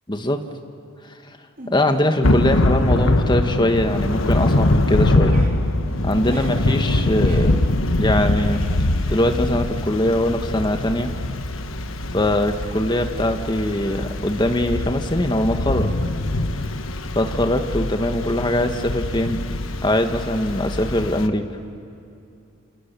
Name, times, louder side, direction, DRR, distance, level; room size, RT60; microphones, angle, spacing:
voice 1, 0.1-0.4 1.7-5.4 6.0-7.6 8.0-8.6 9.1-11.1 12.1-15.9 17.1-19.4 19.8-21.4, left 1 dB, 20° left, 6 dB, 1.5 m, -22 dB
sound 1, 1.6-2.1 2.5-3.9 4.1-10.7, right 2 dB, 45° right, 3.4 m, -45 dB
Thunder / Rain, 2.2-21.3, left 1 dB, 70° left, 1.3 m, -23 dB
28.5 x 28.5 x 7.0 m, 2.7 s
head